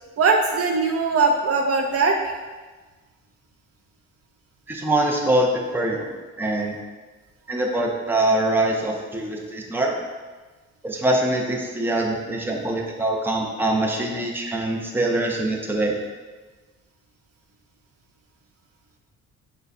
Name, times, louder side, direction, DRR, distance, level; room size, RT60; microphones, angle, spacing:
voice 1, 0.2-2.4, right 4 dB, 55° right, 2 dB, 0.5 m, -20 dB
voice 2, 4.7-6.8 7.5-9.9 10.8-16.0, right 1 dB, 5° right, 0 dB, 0.6 m, -23 dB
6.3 x 2.2 x 2.6 m, 1.3 s
cardioid pair, 90°, 30 cm